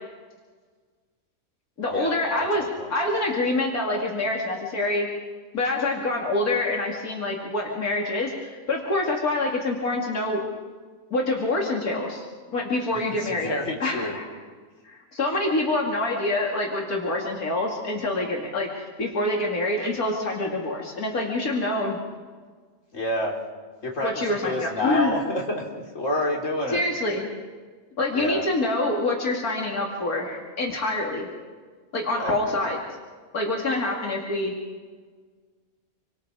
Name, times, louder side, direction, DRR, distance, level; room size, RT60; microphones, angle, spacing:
voice 1, 1.8-5.1 5.5-10.4 11.1-13.5 13.8-14.3 14.8-22.0 24.0-25.1 26.7-27.3 28.0-31.3 31.9-32.8 33.3-34.5, left 2 dB, 85° left, -1 dB, 3.2 m, -26 dB
voice 2, 2.6-2.9 13.2-14.2 22.9-23.4 23.8-26.8 28.1-28.4 32.2-32.6, left 1 dB, 60° left, -1 dB, 4.0 m, -28 dB
27.5 x 24.5 x 4.9 m, 1.5 s
omnidirectional pair, 1.5 m